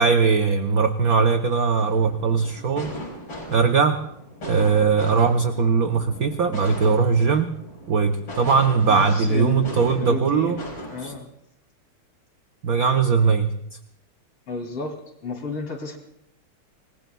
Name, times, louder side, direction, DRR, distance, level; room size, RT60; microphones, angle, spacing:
voice 1, 0.0-2.9 3.5-4.0 4.4-7.5 7.9-10.6 11.0-11.1 12.6-13.5, right 5 dB, 60° right, 6 dB, 0.9 m, -20 dB
sound 1, 1.8-11.2, equal, 65° left, 5.3 m, -38 dB
voice 2, 8.9-10.6 10.9-11.3 14.5-16.0, left 3 dB, 80° left, 2 dB, 3.8 m, -32 dB
27.0 x 20.5 x 2.3 m, 0.72 s
omnidirectional pair, 2.4 m